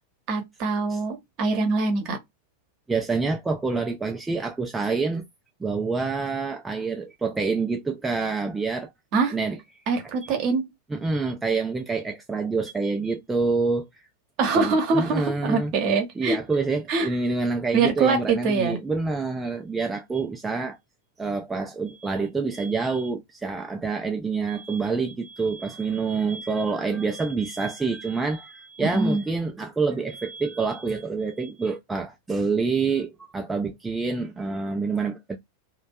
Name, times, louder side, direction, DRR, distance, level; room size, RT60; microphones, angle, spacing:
voice 1, 0.3-2.2 9.1-9.4 9.9-10.7 14.4-16.4 16.9-17.1 17.7-18.8 28.8-29.2, right 4 dB, 40° right, 0.8 m, -24 dB
voice 2, 2.9-5.2 5.6-8.9 9.3-9.6 10.9-14.0 14.5-15.7 16.2-20.8 21.2-35.4, right 4 dB, 10° right, 0.3 m, -27 dB
2.5 x 2.2 x 2.2 m
figure-of-eight pair, 90°, 0 cm